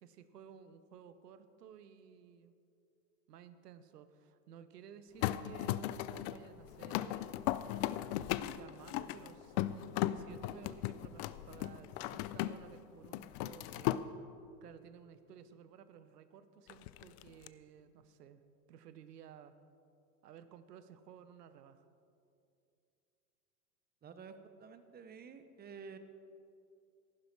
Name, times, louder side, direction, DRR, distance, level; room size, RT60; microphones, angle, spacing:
voice 1, 0.0-2.6 3.3-7.5 8.4-14.0 14.6-18.4 18.7-19.5 20.2-21.9, right 8 dB, 75° right, 12 dB, 1.0 m, -55 dB
sound 1, 5.2-12.8 13.0-14.0 16.7-17.5, left 14 dB, 45° left, 0.5 m, -37 dB
voice 2, 24.0-24.3 24.6-26.0, right 6 dB, 20° right, 10 dB, 0.9 m, -50 dB
15.0 x 11.5 x 4.6 m, 2.6 s
hypercardioid pair, 100°, 47 cm